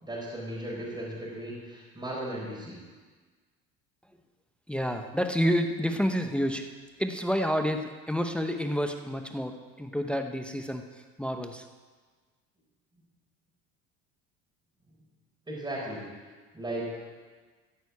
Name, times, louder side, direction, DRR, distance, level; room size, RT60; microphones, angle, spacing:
voice 1, 0.0-2.8 15.5-16.0 16.5-16.9, right 1 dB, 15° right, -4 dB, 4.3 m, -36 dB
voice 2, 4.7-6.7 7.0-10.8 11.2-11.6, equal, 5° left, 6 dB, 0.8 m, -29 dB
14.5 x 6.3 x 8.4 m, 1.4 s
supercardioid pair, 110°, 33 cm